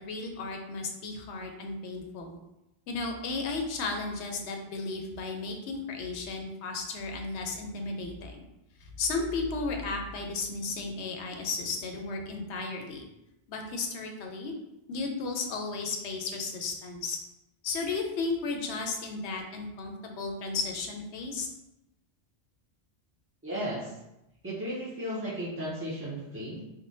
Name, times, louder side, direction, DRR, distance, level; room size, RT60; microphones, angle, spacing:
voice 1, 0.0-2.4 2.9-8.4 8.8-13.1 13.5-14.5 14.9-17.2 17.6-21.5, left 3 dB, 90° left, 3 dB, 0.9 m, -34 dB
voice 2, 23.4-24.0 24.4-26.6, equal, 20° right, -8 dB, 0.4 m, -35 dB
3.6 x 2.1 x 2.6 m, 0.91 s
omnidirectional pair, 1.1 m